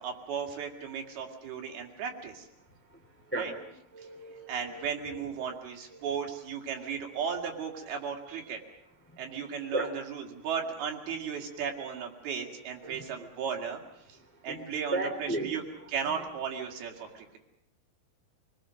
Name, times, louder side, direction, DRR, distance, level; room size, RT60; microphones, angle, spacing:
voice 1, 0.0-2.5 3.3-3.5 4.0-4.1 4.5-8.6 9.2-13.8 14.1-14.2 14.4-15.6 15.9-17.4, right 7 dB, 75° right, 2 dB, 4.1 m, -35 dB
voice 2, 3.3-3.7 3.9-5.6 5.9-6.0 9.7-9.9 12.8-13.3 14.5-14.6 14.9-15.6, right 1 dB, 5° left, 3 dB, 2.0 m, -36 dB
27.5 x 20.0 x 6.4 m, 0.81 s
omnidirectional pair, 4.5 m